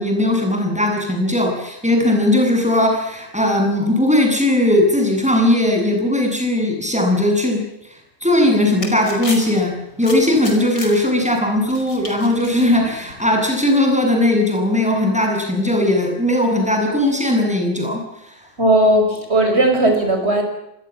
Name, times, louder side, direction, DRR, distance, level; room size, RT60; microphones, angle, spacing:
voice 1, 0.0-7.6 8.2-18.0 18.3-18.4, left 1 dB, 5° right, 2 dB, 7.9 m, -18 dB
sound 1, 8.3-13.5, left 2 dB, 65° left, 5.8 m, -35 dB
voice 2, 18.6-20.4, right 1 dB, 35° right, 4 dB, 6.0 m, -16 dB
26.0 x 21.5 x 7.5 m, 0.85 s
omnidirectional pair, 1.9 m